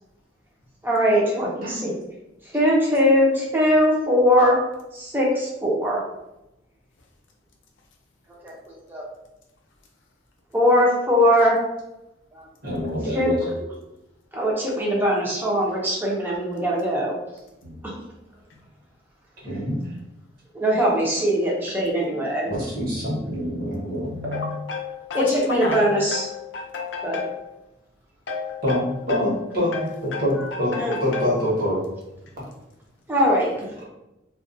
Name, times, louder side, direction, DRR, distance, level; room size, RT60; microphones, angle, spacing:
voice 1, 0.8-1.9 2.5-4.6 5.0-6.0 8.4-8.5 8.9-9.0 10.5-11.6 12.4-12.5 13.1-13.3 14.3-17.1 17.8-18.0 20.5-22.5 25.1-26.3 27.0-27.2 30.7-31.0 33.1-33.5, equal, 10° right, -3 dB, 0.6 m, -21 dB
voice 2, 1.6-1.9 12.6-13.4 17.6-17.8 19.4-19.9 22.5-24.3 28.6-31.8, equal, 50° right, -5 dB, 1.0 m, -26 dB
voice 3, 24.1-27.5 28.3-29.3 29.7-31.3, left 4 dB, 80° left, 1 dB, 0.5 m, -31 dB
2.3 x 2.2 x 2.5 m, 0.91 s
head